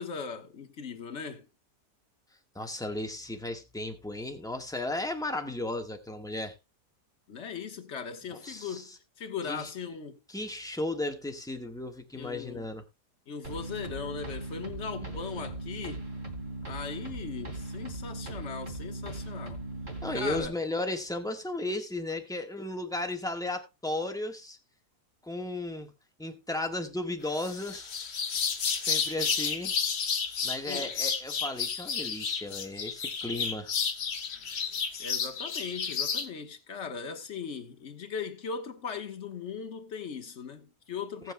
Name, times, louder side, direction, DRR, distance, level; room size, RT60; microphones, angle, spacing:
voice 1, 0.0-1.5 7.3-10.2 12.1-12.7 13.3-16.1 16.6-19.6 20.1-20.5 30.7-31.0 35.0-41.3, left 6 dB, 50° left, 1.4 m, -39 dB
voice 2, 2.5-6.5 8.3-9.0 9.5-9.7 10.3-12.8 20.0-24.6 25.2-25.9 26.2-28.0 28.8-29.8 30.4-33.7 41.2-41.3, left 2 dB, ahead, 1.2 m, -35 dB
sound 1, 13.4-20.4, right 2 dB, 30° right, 2.9 m, -38 dB
sound 2, 27.4-36.3, left 6 dB, 70° left, 1.8 m, -31 dB
18.5 x 7.7 x 2.2 m
omnidirectional pair, 1.7 m